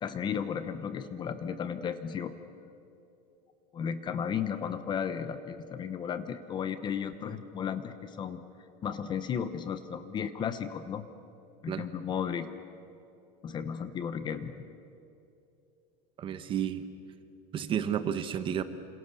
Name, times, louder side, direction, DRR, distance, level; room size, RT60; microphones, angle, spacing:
voice 1, 0.0-2.3 3.7-8.4 8.8-11.1 11.6-12.5 13.4-14.7, left 7 dB, 20° left, 11 dB, 0.9 m, -34 dB
voice 2, 16.2-16.8 17.5-18.6, right 9 dB, 25° right, 11 dB, 1.0 m, -31 dB
28.0 x 27.0 x 6.9 m, 2.7 s
cardioid pair, 175°, 21 cm